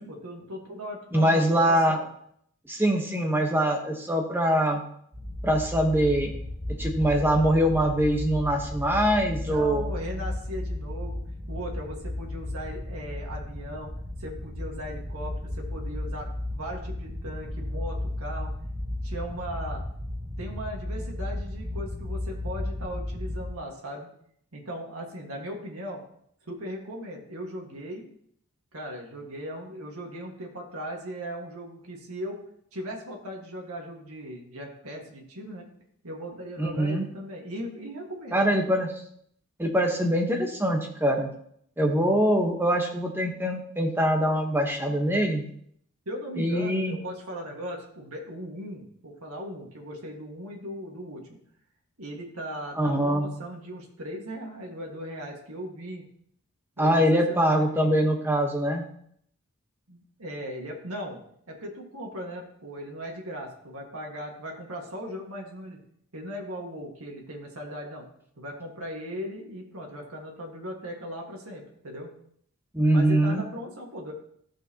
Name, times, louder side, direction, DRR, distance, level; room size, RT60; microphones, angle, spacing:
voice 1, 0.0-2.0 9.5-11.2 11.5-13.9 14.2-18.5 19.0-19.8 20.4-24.1 24.5-26.0 26.5-28.0 28.7-32.4 32.7-35.7 36.0-38.6 46.1-51.3 52.0-56.1 56.8-57.9 59.9-61.2 61.5-65.8 66.1-68.1 68.4-72.1 72.9-74.1, equal, 80° right, 0 dB, 1.8 m, -38 dB
voice 2, 1.1-2.0 2.7-4.8 5.4-6.3 6.8-9.9 36.6-37.1 38.3-38.9 39.6-41.3 41.8-45.4 46.4-47.0 52.7-53.3 56.8-58.8 72.7-73.4, equal, 10° right, 2 dB, 1.2 m, -23 dB
sound 1, 5.1-23.5, left 1 dB, 45° right, 2.1 m, -34 dB
13.5 x 6.6 x 2.9 m, 0.67 s
head